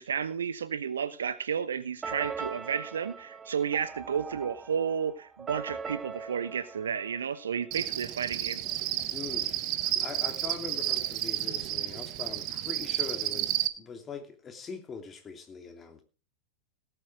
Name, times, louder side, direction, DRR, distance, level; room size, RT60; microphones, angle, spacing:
voice 1, 0.0-8.6, right 7 dB, 70° right, 1.0 m, -32 dB
sound 1, 2.0-7.8, right 5 dB, 15° right, 1.4 m, -41 dB
Cricket, 7.7-13.7, right 13 dB, 40° right, 1.1 m, -31 dB
voice 2, 9.1-9.5 9.8-16.0, left 5 dB, 20° left, 2.7 m, -42 dB
18.0 x 8.0 x 4.8 m
figure-of-eight pair, 90°, 0 cm